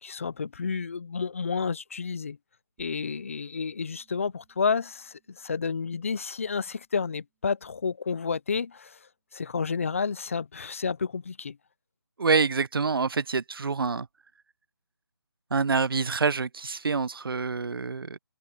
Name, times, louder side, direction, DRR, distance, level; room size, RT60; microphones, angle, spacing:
voice 1, 0.0-2.4 2.8-9.0 9.3-11.6, left 5 dB, 35° left, 0.5 m, -30 dB
sound 1, 2.8-8.2, right 24 dB, 10° right, 6.8 m, -69 dB
voice 2, 12.2-14.1 15.5-18.2, right 4 dB, 60° right, 0.9 m, -26 dB
figure-of-eight pair, 170°, 13 cm